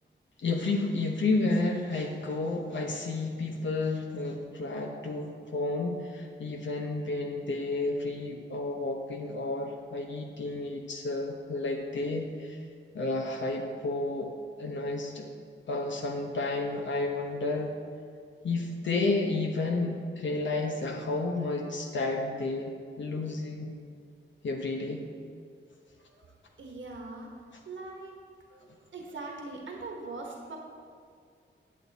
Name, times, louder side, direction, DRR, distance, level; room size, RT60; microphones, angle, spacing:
voice 1, 0.4-12.6 12.9-14.3 14.6-15.3 15.7-17.7 18.4-22.7 23.0-23.8 24.4-25.1, left 2 dB, 75° left, 1 dB, 0.9 m, -31 dB
voice 2, 26.1-27.3 27.6-28.1 28.5-30.6, right 3 dB, 80° right, 0 dB, 1.2 m, -42 dB
8.9 x 8.4 x 4.1 m, 2.2 s
wide cardioid pair, 140°, 19 cm